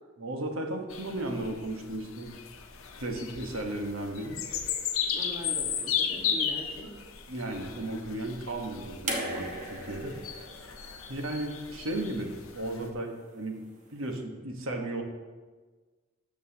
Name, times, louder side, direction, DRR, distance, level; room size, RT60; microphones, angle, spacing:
voice 1, 0.2-2.3 3.0-4.4 7.3-10.2 11.1-13.6 13.9-15.0, right 1 dB, 80° right, 3 dB, 1.2 m, -35 dB
sound 1, 0.9-12.9, left 8 dB, 80° left, 0.7 m, -35 dB
voice 2, 4.5-6.9, equal, 15° right, -3 dB, 1.5 m, -43 dB
sound 2, 9.1-12.2 13.4-13.5, right 1 dB, 35° right, 1.2 m, -38 dB
13.0 x 7.3 x 2.9 m, 1.4 s
head